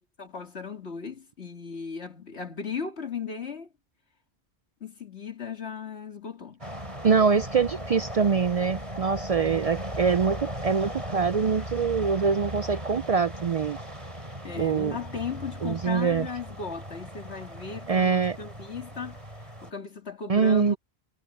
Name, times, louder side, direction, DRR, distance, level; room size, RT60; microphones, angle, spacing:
voice 1, 0.2-3.7 4.8-6.6 14.4-20.8, left 5 dB, 75° left, 2.8 m, -37 dB
sound 1, 6.6-19.7, equal, 30° right, 5.3 m, -38 dB
voice 2, 7.0-13.8 14.6-15.0 15.6-16.3 17.9-18.4 20.3-20.7, right 5 dB, 55° right, 0.4 m, -24 dB
omnidirectional pair, 1.1 m